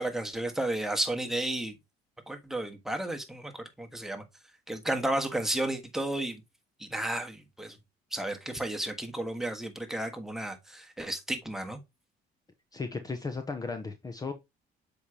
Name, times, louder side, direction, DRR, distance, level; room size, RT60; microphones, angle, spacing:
voice 1, 0.0-1.7 2.3-4.2 4.7-6.4 6.8-7.8 8.1-11.8, right 1 dB, ahead, 1.4 m, -33 dB
voice 2, 12.7-14.3, left 4 dB, 20° left, 0.8 m, -35 dB
7.1 x 4.9 x 2.8 m
cardioid pair, 110°, 17 cm